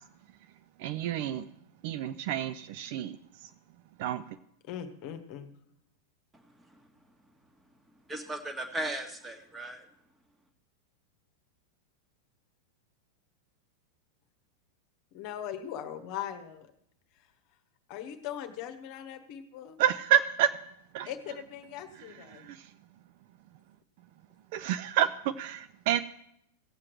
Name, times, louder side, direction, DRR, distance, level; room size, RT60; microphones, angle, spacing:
voice 1, 0.8-1.4 1.8-3.1 4.0-4.2 19.8-20.5 20.9-21.1 24.5-26.0, right 10 dB, 50° right, 13 dB, 0.4 m, -28 dB
voice 2, 4.7-5.5 15.1-16.7 17.9-19.8 21.1-22.5, left 10 dB, 45° left, 7 dB, 1.1 m, -40 dB
voice 3, 6.3-6.8 8.1-9.9, right 1 dB, 10° right, 5 dB, 1.6 m, -37 dB
17.0 x 7.6 x 4.6 m, 0.75 s
figure-of-eight pair, 90°, 0 cm